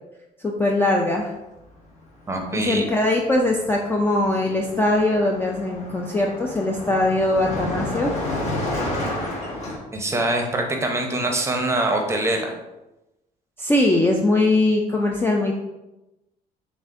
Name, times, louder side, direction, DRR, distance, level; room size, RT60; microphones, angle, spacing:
voice 1, 0.4-1.3 2.5-8.2 13.6-15.6, left 2 dB, 15° left, 0 dB, 0.3 m, -21 dB
Car passing by, 2.3-2.5 2.8-9.8, left 1 dB, 45° left, 1.3 m, -31 dB
voice 2, 2.3-2.9 9.9-12.6, right 1 dB, 15° right, 2 dB, 0.7 m, -24 dB
6.1 x 2.4 x 2.5 m, 0.98 s
cardioid pair, 110°, 17 cm